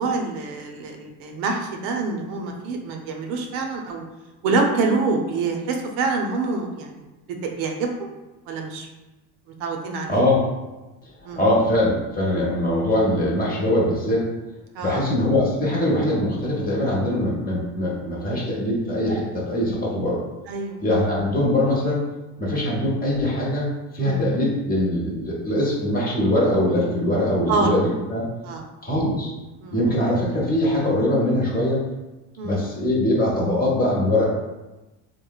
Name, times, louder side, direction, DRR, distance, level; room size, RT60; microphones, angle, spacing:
voice 1, 0.0-4.0 4.4-7.0 7.4-8.1 8.5-8.9 9.6-10.2 11.2-11.4 14.8-15.0 20.5-20.8 24.0-24.2 27.5-27.8 28.4-28.6 29.6-29.8 32.4-32.6, right 3 dB, 70° right, 2 dB, 0.6 m, -26 dB
voice 2, 10.1-10.4 11.4-14.3 14.8-20.2 20.8-22.0 22.4-28.3 28.8-29.3 29.7-31.8 32.4-34.2, left 1 dB, 20° left, -5 dB, 0.9 m, -22 dB
2.9 x 2.1 x 2.3 m, 1.1 s
supercardioid pair, 95°, 46 cm